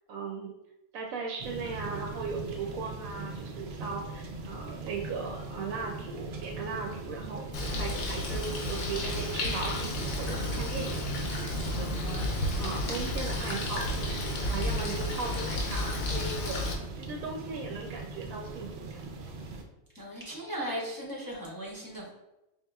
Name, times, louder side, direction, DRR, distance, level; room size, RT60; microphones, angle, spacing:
voice 1, 0.1-0.5 0.9-11.0 11.5-12.2 12.6-16.7 16.9-19.0, right 4 dB, 90° right, 1 dB, 1.0 m, -38 dB
sound 1, 1.4-19.6, right 3 dB, 60° right, 0.7 m, -40 dB
Bird, 7.5-16.7, left 1 dB, 85° left, 1.1 m, -32 dB
voice 2, 11.9-12.3 19.9-22.1, equal, 25° left, -5 dB, 0.5 m, -38 dB
4.8 x 2.9 x 2.3 m, 0.94 s
omnidirectional pair, 1.4 m